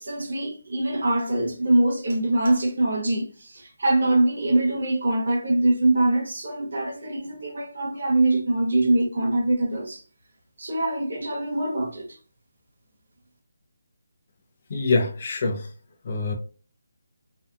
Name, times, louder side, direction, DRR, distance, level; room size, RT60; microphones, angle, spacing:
voice 1, 0.0-10.0 10.6-12.2, right 2 dB, 70° right, 0.7 m, -23 dB
voice 2, 14.7-15.7 16.0-16.3, left 3 dB, 40° left, 0.5 m, -24 dB
2.7 x 2.3 x 2.3 m
hypercardioid pair, 170°, 0 cm